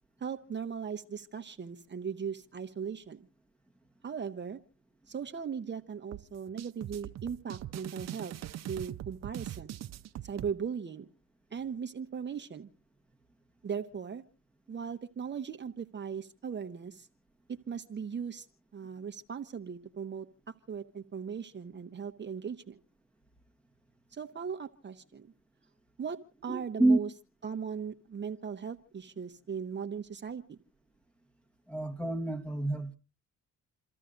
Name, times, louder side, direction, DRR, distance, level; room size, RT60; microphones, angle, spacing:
voice 1, 0.2-3.2 4.0-4.6 5.1-8.3 8.7-9.8 10.2-11.1 11.5-12.7 13.6-14.2 14.7-17.1 17.5-18.5 18.7-22.8 24.1-25.3 26.0-27.1 27.4-30.6, right 6 dB, 35° right, 1.0 m, -38 dB
sound 1, 6.1-10.5, right 12 dB, 60° right, 0.7 m, -41 dB
voice 2, 26.5-27.0 31.7-33.0, right 2 dB, 5° left, 1.3 m, -28 dB
28.5 x 13.5 x 2.5 m
cardioid pair, 90°, 30 cm